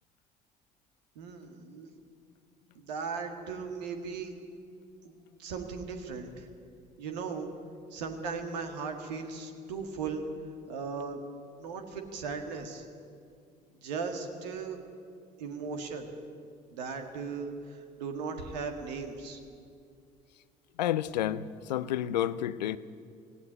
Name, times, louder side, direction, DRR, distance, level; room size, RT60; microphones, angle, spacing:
voice 1, 1.2-1.9 2.8-4.3 5.0-5.1 5.4-6.5 7.0-7.5 7.9-10.2 10.7-11.2 11.6-12.8 13.8-14.8 15.4-16.1 16.7-19.4, right 5 dB, 80° right, 1.8 m, -37 dB
voice 2, 20.8-22.8, left 11 dB, 80° left, 0.6 m, -30 dB
17.0 x 16.0 x 10.0 m
hypercardioid pair, 50°, 21 cm